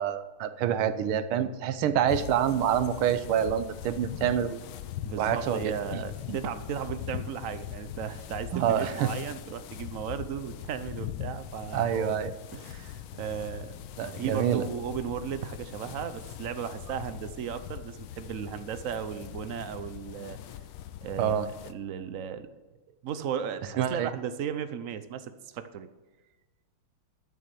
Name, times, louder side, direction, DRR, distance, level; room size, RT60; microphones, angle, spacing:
voice 1, 0.0-4.6 5.2-6.0 6.3-6.4 8.5-9.1 11.7-12.3 14.0-14.6 21.2-21.5 23.8-24.1, right 9 dB, 90° right, 12 dB, 1.7 m, -27 dB
sound 1, 2.1-21.7, left 12 dB, 80° left, 1.5 m, -41 dB
voice 2, 5.0-12.1 12.5-13.8 14.2-20.4 21.0-22.5 23.0-25.9, right 8 dB, 65° right, 11 dB, 0.8 m, -36 dB
12.5 x 7.0 x 6.7 m, 1.2 s
omnidirectional pair, 2.3 m